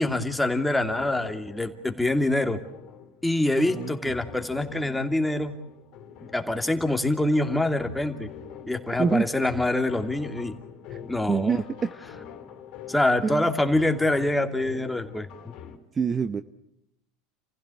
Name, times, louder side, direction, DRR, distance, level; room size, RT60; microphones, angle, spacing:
voice 1, 0.0-2.6 3.2-5.5 6.2-8.3 8.7-10.5 11.0-11.6 12.9-15.5, left 1 dB, 5° left, 5 dB, 2.7 m, -25 dB
sound 1, 0.8-15.8, left 8 dB, 55° left, 3.2 m, -45 dB
voice 2, 3.7-4.1 9.0-9.3 10.9-11.0 11.3-11.9 13.3-13.5 15.9-16.4, right 5 dB, 25° right, 11 dB, 0.9 m, -26 dB
29.0 x 15.5 x 8.5 m, 0.82 s
hypercardioid pair, 85°, 0 cm